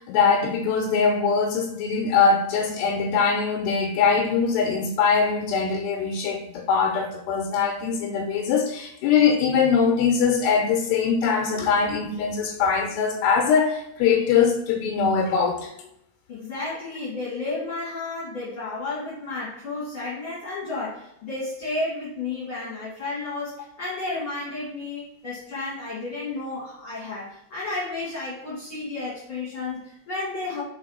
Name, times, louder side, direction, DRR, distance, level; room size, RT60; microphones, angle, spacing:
voice 1, 0.0-15.7, left 6 dB, 85° left, 3 dB, 2.9 m, -22 dB
voice 2, 16.3-30.6, left 3 dB, 45° left, -7 dB, 1.9 m, -32 dB
6.0 x 4.3 x 4.0 m, 0.79 s
omnidirectional pair, 4.9 m